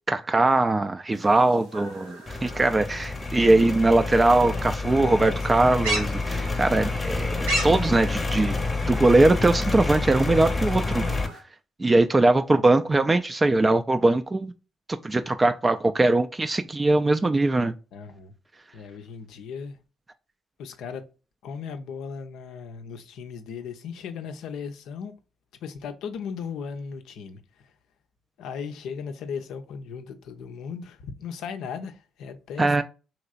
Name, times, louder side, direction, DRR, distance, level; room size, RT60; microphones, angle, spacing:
voice 1, 0.1-8.6 8.9-11.0 11.8-14.5 14.9-17.7 32.6-32.8, right 2 dB, 25° right, 0.3 m, -21 dB
sound 1, 1.1-11.4, right 2 dB, 85° right, 0.9 m, -37 dB
sound 2, 2.3-11.3, left 3 dB, 25° left, 0.8 m, -28 dB
voice 2, 4.9-5.7 6.2-6.4 17.9-18.3 18.7-19.8 20.6-21.1 21.4-25.1 25.6-27.7 28.4-32.8, left 6 dB, 65° left, 0.5 m, -37 dB
3.1 x 2.9 x 2.4 m
hypercardioid pair, 45°, 0 cm